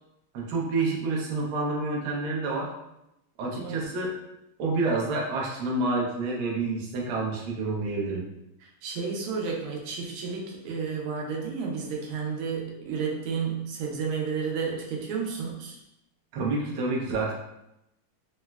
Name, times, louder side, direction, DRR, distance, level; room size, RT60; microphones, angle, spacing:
voice 1, 0.3-2.7 3.4-4.1 4.6-8.2 16.3-17.3, right 3 dB, 70° right, -3 dB, 1.1 m, -28 dB
voice 2, 8.8-15.8, right 5 dB, 90° right, -1 dB, 1.5 m, -31 dB
3.9 x 2.0 x 2.2 m, 0.86 s
omnidirectional pair, 2.4 m